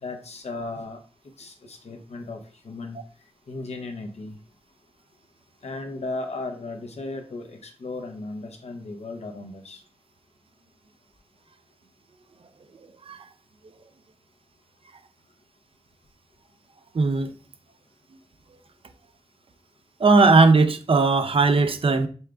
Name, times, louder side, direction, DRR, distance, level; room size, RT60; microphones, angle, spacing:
voice 1, 0.0-1.0 1.4-2.4 2.6-3.0 3.5-4.4 5.6-9.8, left 2 dB, 75° left, 4 dB, 0.8 m, -35 dB
voice 2, 16.9-17.3 20.0-22.1, right 3 dB, 55° right, 9 dB, 0.5 m, -18 dB
5.5 x 3.4 x 2.4 m, 0.38 s
cardioid pair, 50°, 11 cm